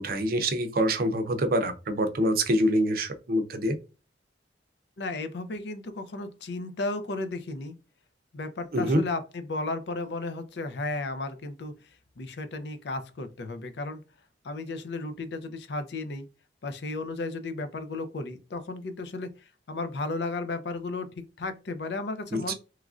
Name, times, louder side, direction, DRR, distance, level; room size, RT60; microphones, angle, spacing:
voice 1, 0.0-3.8 8.7-9.0 22.3-22.5, equal, 55° right, 8 dB, 0.5 m, -25 dB
voice 2, 5.0-7.7 8.3-11.7 12.2-14.0 14.4-16.3 16.6-22.5, left 2 dB, 65° left, 10 dB, 0.5 m, -34 dB
3.0 x 2.4 x 2.4 m, 0.30 s
head